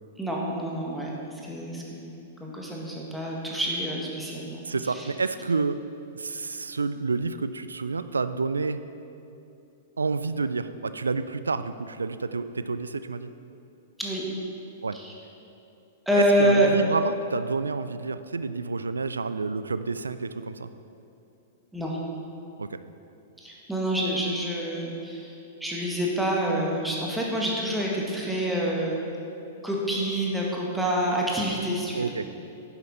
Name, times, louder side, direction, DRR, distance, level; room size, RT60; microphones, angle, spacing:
voice 1, 0.2-1.1 1.4-4.6 4.9-5.1 14.0-14.2 14.9-15.1 16.1-16.7 21.7-22.0 23.4-25.3 25.6-29.0 29.6-32.1, right 1 dB, 5° right, -4 dB, 1.6 m, -27 dB
voice 2, 4.6-5.8 6.1-8.8 10.0-13.3 14.8-15.0 16.2-20.7 22.6-22.8 31.9-32.3, right 4 dB, 80° right, 12 dB, 0.4 m, -29 dB
10.0 x 8.0 x 4.3 m, 2.8 s
figure-of-eight pair, 105°, 0 cm